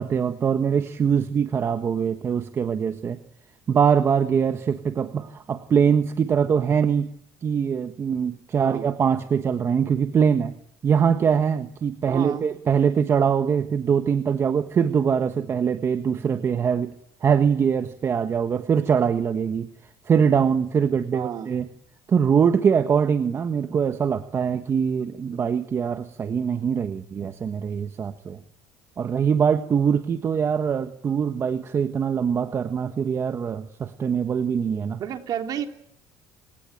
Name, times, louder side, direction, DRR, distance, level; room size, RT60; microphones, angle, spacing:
voice 1, 0.0-3.2 3.7-7.1 7.4-10.5 10.8-16.9 17.2-19.7 20.1-21.7 22.1-28.4 29.0-35.0, right 7 dB, 35° right, 9 dB, 1.3 m, -23 dB
voice 2, 12.1-12.4 21.1-21.5 35.0-35.7, right 9 dB, 50° right, 5 dB, 3.3 m, -30 dB
29.0 x 17.5 x 9.2 m, 0.73 s
cardioid pair, 120°, 8 cm